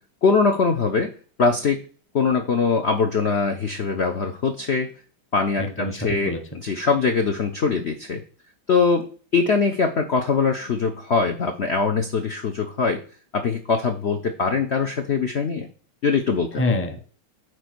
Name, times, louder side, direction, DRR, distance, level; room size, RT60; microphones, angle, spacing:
voice 1, 0.2-1.1 1.4-1.8 2.1-4.9 5.3-6.4 6.6-8.2 8.7-9.1 9.3-13.0 13.3-15.7 16.0-16.5, left 4 dB, 65° left, 4 dB, 0.6 m, -22 dB
voice 2, 5.6-6.6 16.6-17.0, left 2 dB, 10° left, 5 dB, 0.7 m, -26 dB
9.1 x 3.4 x 6.1 m, 0.39 s
omnidirectional pair, 2.3 m